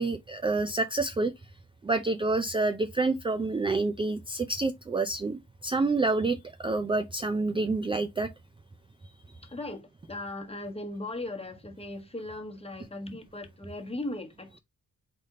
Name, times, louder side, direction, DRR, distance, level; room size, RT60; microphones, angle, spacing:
voice 1, 0.0-1.3 1.8-8.3, right 3 dB, 15° right, 0.4 m, -28 dB
voice 2, 9.5-14.6, left 2 dB, 20° left, 1.2 m, -38 dB
4.2 x 3.4 x 3.6 m
cardioid pair, 95°, 32 cm